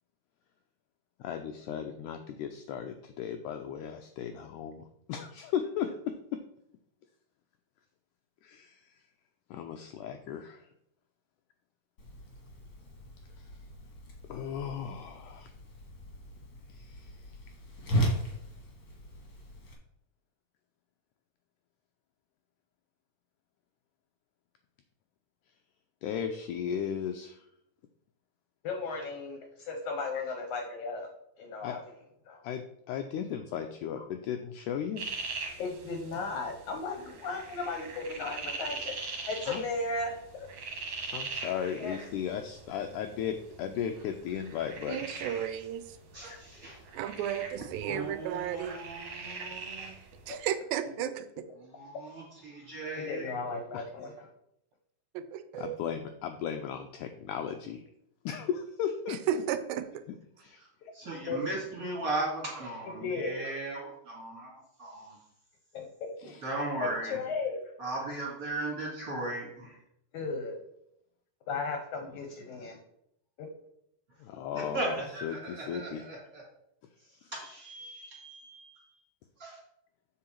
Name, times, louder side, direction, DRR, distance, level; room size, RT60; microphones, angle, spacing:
voice 1, 1.2-6.4 8.4-9.0 9.5-10.7 13.3-13.6 14.3-15.5 16.7-17.5 26.0-27.5 30.1-30.2 31.6-31.8 32.4-35.0 39.5-39.6 41.1-45.1 46.3-46.4 53.2-53.4 53.7-53.8 55.5-57.8 58.2-59.4 60.1-60.6 66.2-66.4 68.0-68.1 74.2-74.9 75.2-76.0, left 8 dB, 90° left, 6 dB, 1.7 m, -36 dB
Whoosh swoosh swish, 12.0-19.7, right 1 dB, 40° left, 1.5 m, -37 dB
voice 2, 28.6-31.1 31.4-31.8 32.3-32.4 35.6-40.5 41.8-42.0 50.3-50.4 53.0-54.3 61.3-61.4 63.0-63.4 65.7-66.1 66.8-67.6 70.1-70.6 71.5-72.8 73.4-73.5, left 3 dB, 70° left, 4 dB, 1.9 m, -35 dB
sound 1, 35.0-50.4, right 4 dB, 55° right, 2.0 m, -42 dB
voice 3, 44.9-46.0 46.9-48.8 50.3-51.3 55.1-55.8 59.1-60.0, right 10 dB, 80° right, 12 dB, 2.3 m, -33 dB
voice 4, 46.1-46.8 47.6-49.9 51.6-53.3 60.6-65.2 66.2-67.2 67.8-69.8 74.5-76.4 77.5-79.0 79.4-79.6, right 2 dB, 30° right, -3 dB, 2.1 m, -37 dB
7.5 x 6.3 x 4.5 m, 0.77 s
omnidirectional pair, 4.2 m